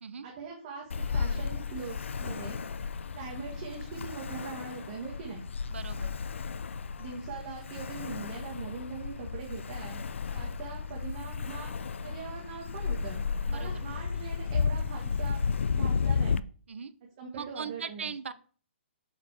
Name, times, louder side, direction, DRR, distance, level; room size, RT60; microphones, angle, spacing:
voice 1, 0.2-2.6 3.1-5.4 7.0-10.0 10.3-11.7 12.0-15.4 15.7-16.4 17.2-18.1, right 5 dB, 25° right, -2 dB, 1.4 m, -41 dB
Ocean, 0.9-16.4, left 5 dB, 80° left, 0.5 m, -33 dB
voice 2, 5.7-6.1 13.5-13.8 16.7-16.9 17.3-18.3, right 6 dB, 75° right, 11 dB, 0.9 m, -39 dB
6.7 x 5.5 x 4.7 m, 0.42 s
hypercardioid pair, 175°, 7 cm